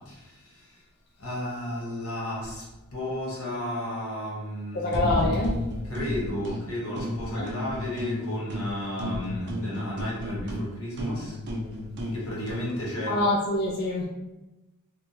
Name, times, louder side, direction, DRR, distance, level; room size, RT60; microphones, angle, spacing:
voice 1, 1.2-2.6 2.9-5.2 5.9-11.3 12.1-13.2, left 1 dB, 85° left, -5 dB, 1.0 m, -33 dB
voice 2, 4.7-5.5 7.3-7.5 13.1-14.1, left 2 dB, 45° left, -2 dB, 0.3 m, -25 dB
sound 1, 4.9-6.6 7.0-8.7 9.0-12.7, left 1 dB, 55° right, 0.5 m, -32 dB
2.9 x 2.2 x 2.6 m, 1.0 s
head